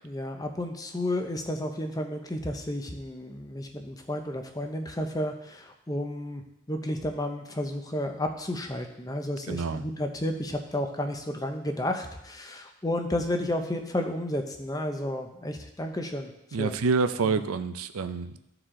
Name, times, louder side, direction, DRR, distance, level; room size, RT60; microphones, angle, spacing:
voice 1, 0.0-6.4 6.7-16.3 16.6-16.8, left 1 dB, 15° left, 5 dB, 0.6 m, -32 dB
voice 2, 9.5-9.8 16.5-18.4, right 4 dB, 75° right, 11 dB, 0.5 m, -27 dB
13.5 x 4.8 x 3.7 m, 0.87 s
head